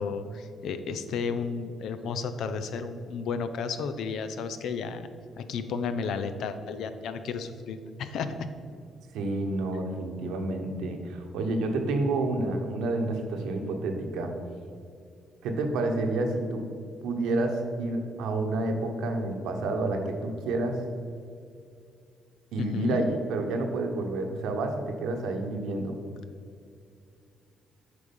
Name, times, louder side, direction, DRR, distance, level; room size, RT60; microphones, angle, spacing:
voice 1, 0.0-5.1 5.4-8.5 22.6-23.0, left 5 dB, 75° left, 10 dB, 0.6 m, -32 dB
voice 2, 9.1-14.3 15.4-16.6 17.0-20.8 22.5-26.0, right 2 dB, 90° right, 4 dB, 1.1 m, -29 dB
8.5 x 5.0 x 5.3 m, 2.4 s
cardioid pair, 90°, 0 cm